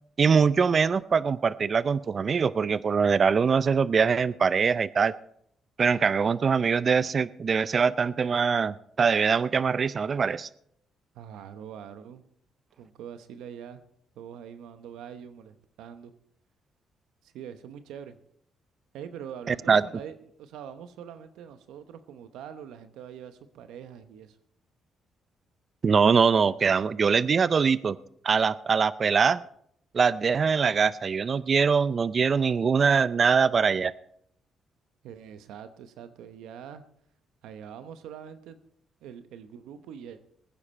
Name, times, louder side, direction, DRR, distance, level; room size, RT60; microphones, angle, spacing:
voice 1, 0.2-5.1 5.8-10.5 19.5-19.8 25.8-28.0 28.2-29.4 29.9-33.9, right 5 dB, 45° right, 17 dB, 0.5 m, -23 dB
voice 2, 11.1-12.2 12.8-13.8 14.2-16.1 17.2-18.2 18.9-24.4 35.0-36.8 37.4-38.6 39.0-40.2, right 8 dB, 90° right, 10 dB, 0.9 m, -43 dB
20.0 x 9.8 x 4.4 m, 0.70 s
cardioid pair, 90°, 0 cm